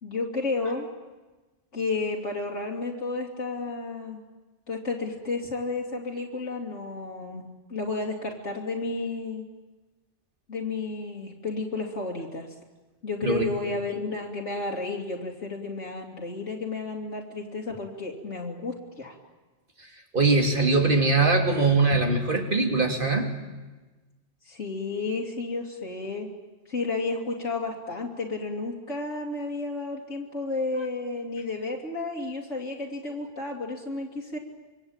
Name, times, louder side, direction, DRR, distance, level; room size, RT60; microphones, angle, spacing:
voice 1, 0.0-0.9 1.7-4.2 4.7-9.4 10.5-12.5 13.0-19.2 24.5-26.3 26.7-34.4, left 3 dB, 75° left, -1 dB, 3.1 m, -32 dB
voice 2, 20.1-23.3, right 3 dB, 45° right, 4 dB, 3.1 m, -22 dB
25.5 x 23.5 x 8.8 m, 1.2 s
omnidirectional pair, 1.2 m